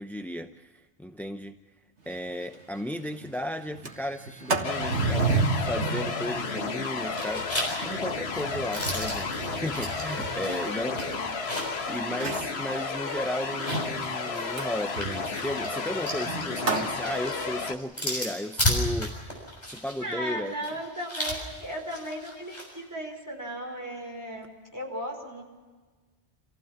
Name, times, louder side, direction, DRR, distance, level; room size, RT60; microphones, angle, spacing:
voice 1, 0.0-1.6 2.1-7.5 7.8-11.4 11.9-20.5, left 1 dB, ahead, 7 dB, 0.5 m, -35 dB
Sliding door, 2.1-2.2 2.5-2.6 3.0-3.3 3.6-11.6 12.1-12.6 14.6-17.0, right 4 dB, 85° right, 2.1 m, -32 dB
sound 1, 4.6-17.7, left 4 dB, 70° left, 1.4 m, -32 dB
sound 2, 6.4-6.9 7.2-11.9 12.2-12.3 13.4-22.7, left 1 dB, 40° left, 6.6 m, -34 dB
voice 2, 10.4-11.3 20.0-25.4, equal, 15° right, 0 dB, 4.9 m, -36 dB
27.5 x 16.0 x 7.2 m, 1.4 s
omnidirectional pair, 1.1 m